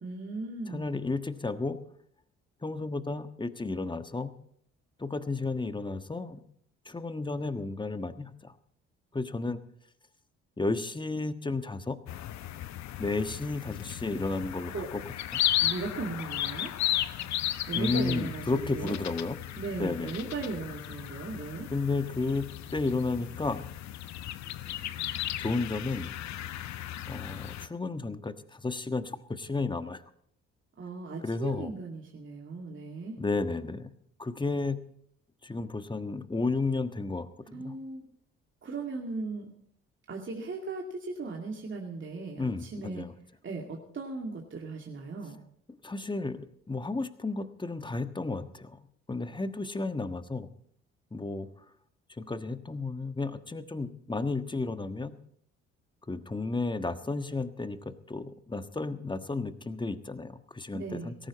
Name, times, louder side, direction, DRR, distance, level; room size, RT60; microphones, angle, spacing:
voice 1, 0.0-0.8 14.7-14.9 15.6-16.7 17.7-19.0 19.6-21.7 30.8-33.2 37.5-38.1 38.6-39.5 40.1-43.0 43.4-45.4 60.7-61.1, right 3 dB, 40° right, 0 dB, 2.4 m, -37 dB
voice 2, 0.7-1.8 2.6-4.3 5.0-6.4 6.8-8.5 9.1-9.6 10.6-12.0 13.0-15.0 17.7-19.4 19.8-20.1 21.7-22.5 22.7-23.8 25.4-26.1 27.1-30.0 31.2-31.7 33.2-33.9 34.2-34.9 35.4-37.8 42.4-43.1 45.8-48.8 49.1-50.5 51.1-51.5 52.2-55.2 56.1-61.1, left 3 dB, 15° left, 10 dB, 1.4 m, -32 dB
sound 1, 12.1-27.7, left 12 dB, 65° left, 1.0 m, -35 dB
17.5 x 14.5 x 4.2 m, 0.66 s
hypercardioid pair, 55°, 30 cm